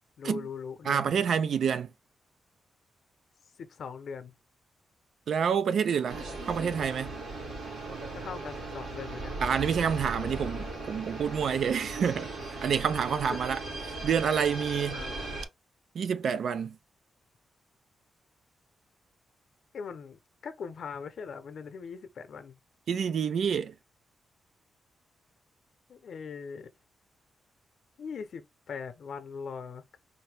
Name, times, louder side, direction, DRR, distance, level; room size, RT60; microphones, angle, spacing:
voice 1, 0.2-1.3 3.6-4.3 8.1-9.4 13.3-13.4 14.9-15.4 19.7-22.6 25.9-26.7 28.0-30.0, left 6 dB, 65° left, 0.8 m, -41 dB
voice 2, 0.9-1.9 5.3-7.2 9.4-12.3 12.6-13.6 14.0-15.0 15.9-16.8 22.9-23.7, right 7 dB, 70° right, 0.5 m, -28 dB
sound 1, 6.1-15.5, right 2 dB, 90° right, 2.7 m, -38 dB
4.3 x 2.7 x 3.3 m
wide cardioid pair, 145°, 0 cm